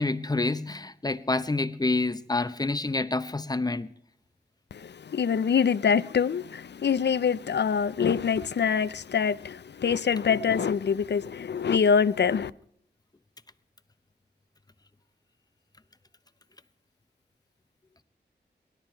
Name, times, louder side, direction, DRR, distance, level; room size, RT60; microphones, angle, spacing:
voice 1, 0.0-3.9, left 2 dB, 20° left, 0.8 m, -28 dB
voice 2, 4.7-12.5, left 6 dB, 75° left, 0.5 m, -25 dB
19.0 x 12.0 x 4.5 m
wide cardioid pair, 105°, 18 cm